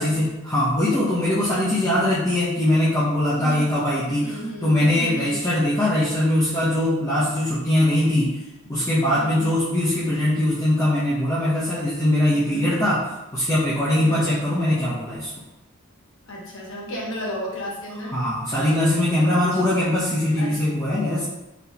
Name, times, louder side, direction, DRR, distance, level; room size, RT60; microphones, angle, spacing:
voice 1, 0.0-8.4 8.7-13.1 13.3-15.3 18.1-21.3, left 1 dB, 15° left, -10 dB, 0.7 m, -21 dB
voice 2, 3.3-3.7 4.2-5.4 9.2-9.6 12.3-12.7 13.9-14.3 16.3-18.2 19.3-19.6 20.4-20.8, equal, 65° left, -4 dB, 1.2 m, -34 dB
4.1 x 3.4 x 2.8 m, 0.96 s
head